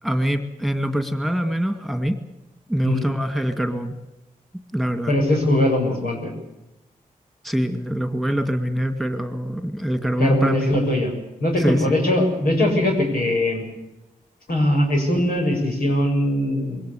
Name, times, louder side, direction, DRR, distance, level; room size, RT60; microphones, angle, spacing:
voice 1, 0.0-2.2 2.7-4.0 4.7-5.1 7.4-10.8 11.6-12.0, equal, ahead, 8 dB, 2.3 m, -24 dB
voice 2, 5.1-6.3 10.2-11.1 11.4-13.6 14.5-16.8, left 1 dB, 85° left, 0 dB, 7.0 m, -21 dB
22.5 x 18.0 x 8.4 m, 0.92 s
cardioid pair, 60°, 15 cm